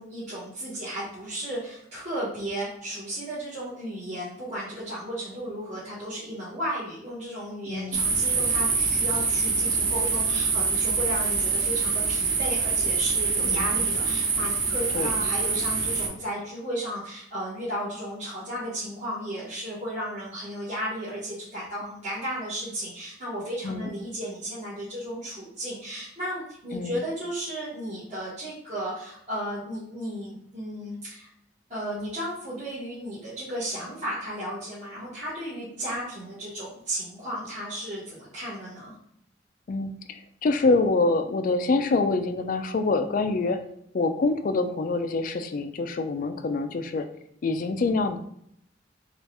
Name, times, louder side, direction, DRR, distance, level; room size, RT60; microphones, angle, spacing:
voice 1, 0.0-31.3 31.7-38.9, equal, 40° right, -12 dB, 1.4 m, -34 dB
voice 2, 7.7-8.0 13.4-13.8 14.9-15.1 23.6-23.9 26.7-27.0 39.7-43.6 43.9-47.1 47.4-48.2, left 3 dB, 45° left, 8 dB, 0.3 m, -26 dB
sound 1, 7.9-16.1, right 5 dB, 85° right, 0.8 m, -25 dB
4.1 x 2.4 x 3.4 m, 0.72 s
head